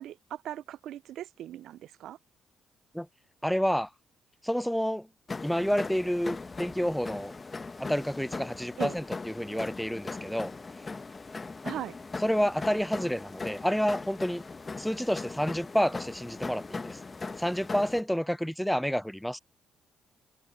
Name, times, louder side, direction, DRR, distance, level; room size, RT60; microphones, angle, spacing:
voice 1, 0.0-2.2 8.8-8.9 11.6-12.0, right 12 dB, 80° right, 0.3 m, -39 dB
voice 2, 3.4-3.9 4.4-5.1 5.4-7.3 7.8-10.5 12.2-14.4 14.8-17.0 17.4-19.4, equal, ahead, 0.3 m, -29 dB
sound 1, 5.3-18.0, left 3 dB, 30° left, 0.9 m, -39 dB
cardioid pair, 90°, 0 cm